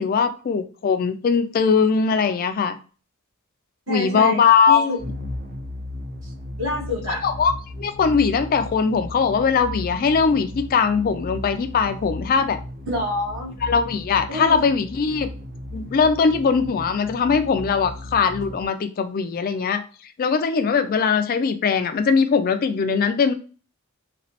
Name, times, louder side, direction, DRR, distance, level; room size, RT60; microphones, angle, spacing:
voice 1, 0.0-2.8 3.9-4.9 7.2-7.5 7.8-12.6 13.6-15.3 15.7-19.8 20.2-23.3, left 5 dB, 40° left, 9 dB, 0.3 m, -20 dB
voice 2, 3.9-5.0 6.2-6.3 6.6-7.2 12.9-13.6 14.3-14.6, left 1 dB, 60° right, -3 dB, 1.1 m, -27 dB
sound 1, 5.0-18.7, left 1 dB, 40° right, 0.4 m, -36 dB
3.0 x 2.9 x 2.8 m, 0.36 s
head